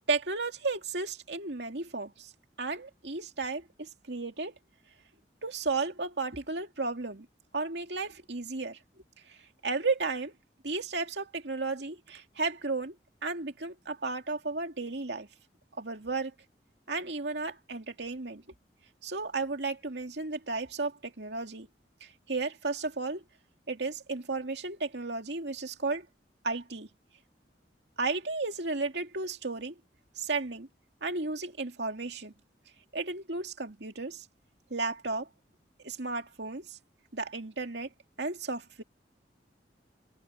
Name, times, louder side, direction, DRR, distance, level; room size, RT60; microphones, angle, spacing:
voice 1, 0.1-2.3 2.6-4.6 5.4-7.3 7.5-8.8 9.3-9.4 9.6-10.3 10.6-12.9 13.2-15.3 15.8-16.3 16.9-18.4 19.0-21.7 22.0-23.2 23.7-26.1 26.4-26.9 28.0-29.7 30.2-30.7 31.0-32.3 32.9-34.3 34.7-35.3 35.8-36.8 37.1-37.9 38.2-38.8, right 3 dB, 70° right, 2.6 m, -33 dB
head